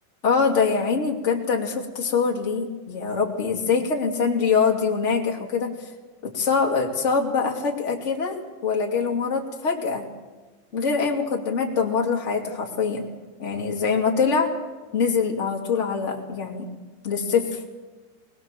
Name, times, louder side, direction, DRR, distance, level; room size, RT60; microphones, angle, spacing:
voice 1, 0.2-5.9 6.2-10.1 10.7-13.1 13.4-14.5 14.9-16.7 17.0-17.6, left 5 dB, 20° left, 0 dB, 2.1 m, -24 dB
21.0 x 21.0 x 7.5 m, 1.3 s
omnidirectional pair, 4.8 m